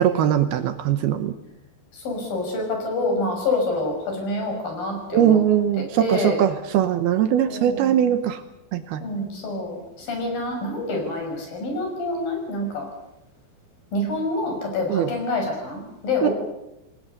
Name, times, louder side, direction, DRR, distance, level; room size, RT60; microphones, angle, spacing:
voice 1, 0.0-1.3 5.1-8.4 8.7-9.0 14.9-15.1 16.2-16.3, right 10 dB, 75° right, 9 dB, 2.8 m, -20 dB
voice 2, 1.9-5.4 6.0-6.4 7.4-8.0 9.0-12.9 13.9-16.3, left 2 dB, 55° left, 2 dB, 7.9 m, -27 dB
28.0 x 20.5 x 6.7 m, 0.88 s
omnidirectional pair, 4.9 m